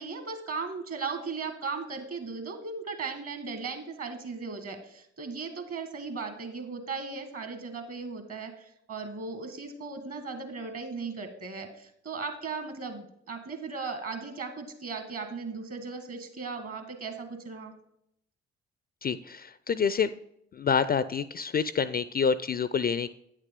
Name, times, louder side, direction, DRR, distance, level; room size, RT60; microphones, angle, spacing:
voice 1, 0.0-17.7, right 4 dB, 50° right, 7 dB, 1.7 m, -37 dB
voice 2, 19.0-20.1 20.6-23.1, left 6 dB, 30° left, 15 dB, 0.4 m, -27 dB
9.0 x 6.6 x 3.7 m, 0.75 s
hypercardioid pair, 40°, 31 cm